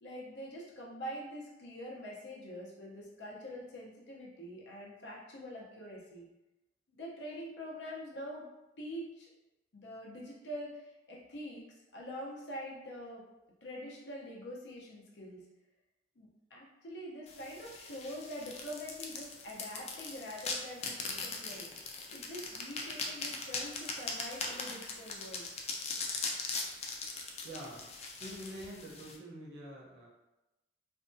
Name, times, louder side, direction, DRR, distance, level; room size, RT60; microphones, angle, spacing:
voice 1, 0.0-6.3 6.9-8.4 8.8-9.3 9.7-11.6 11.9-13.2 13.6-15.5 16.2-21.7 22.1-25.5, equal, 85° left, -3 dB, 0.7 m, -45 dB
sound 1, 17.3-29.2, left 4 dB, 35° left, 0.3 m, -40 dB
voice 2, 27.4-27.9 28.2-30.1, equal, 65° right, -3 dB, 0.7 m, -46 dB
2.6 x 2.3 x 2.6 m, 0.98 s
head